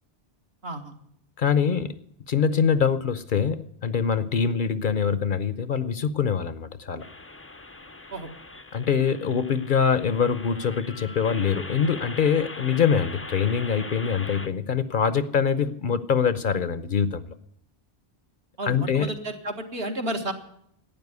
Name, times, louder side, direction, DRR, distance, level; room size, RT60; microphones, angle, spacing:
voice 1, 0.6-0.9 8.1-8.3 18.6-20.3, right 1 dB, 65° right, 4 dB, 1.9 m, -31 dB
voice 2, 1.4-2.0 2.3-7.0 8.7-17.3 18.7-19.1, left 6 dB, 55° left, 14 dB, 0.8 m, -24 dB
sound 1, 7.0-14.5, left 2 dB, 20° left, 0.4 m, -41 dB
12.0 x 9.0 x 9.4 m, 0.71 s
omnidirectional pair, 1.1 m